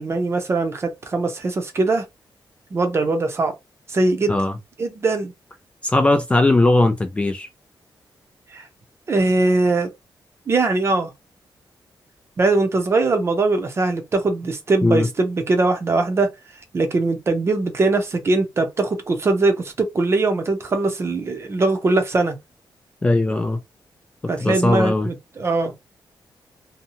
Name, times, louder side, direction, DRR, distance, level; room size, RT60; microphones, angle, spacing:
voice 1, 0.0-2.1 2.7-3.5 3.9-4.3 4.8-5.3 8.5-8.7 9.1-9.9 10.5-11.1 12.4-16.3 16.7-22.4 24.3-25.7, right 3 dB, 35° right, 0.7 m, -21 dB
voice 2, 5.8-7.5 14.8-15.1 23.0-23.6 24.4-25.1, left 2 dB, 15° left, 0.3 m, -18 dB
2.8 x 2.2 x 2.6 m
wide cardioid pair, 175°, 8 cm